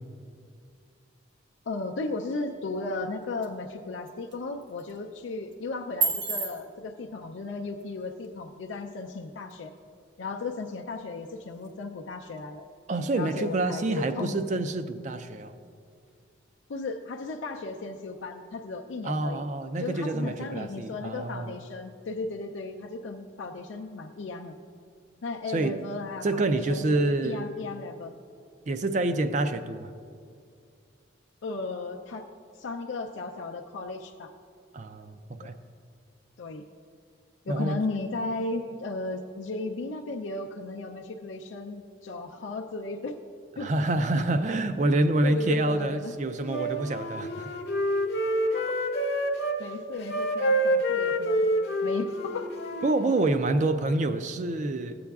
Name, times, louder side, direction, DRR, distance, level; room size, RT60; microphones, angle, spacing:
voice 1, 1.7-9.7 10.2-12.6 13.1-14.3 16.7-19.4 19.8-24.6 25.2-28.1 31.4-32.3 32.5-34.3 35.4-35.5 36.4-36.6 37.5-43.2 43.6-43.7 45.2-46.1 48.5-48.9 49.6-51.5 51.8-52.6, left 3 dB, 80° left, 2 dB, 0.4 m, -35 dB
sound 1, 2.5-16.6, right 4 dB, 65° right, 1.2 m, -40 dB
voice 2, 12.9-15.5 19.0-21.6 25.5-25.8 26.2-27.5 28.7-29.9 34.7-35.5 37.5-37.8 43.6-47.5 52.8-55.0, right 2 dB, 40° right, 10 dB, 0.4 m, -27 dB
Wind instrument woodwind instrument, 46.5-49.6 50.0-53.5, equal, 55° left, 0.8 m, -27 dB
15.0 x 8.5 x 2.3 m, 2.3 s
head